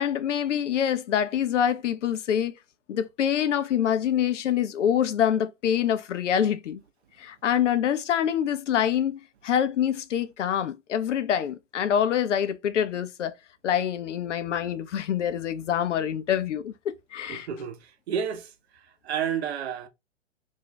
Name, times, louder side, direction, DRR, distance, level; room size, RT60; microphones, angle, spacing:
voice 1, 0.0-2.5 2.9-6.8 7.2-13.3 13.6-17.5, left 9 dB, 70° left, 0.5 m, -25 dB
voice 2, 17.3-17.8 18.1-18.5 19.0-19.9, right 8 dB, 55° right, 0.7 m, -30 dB
2.6 x 2.2 x 3.7 m
hypercardioid pair, 120°, 38 cm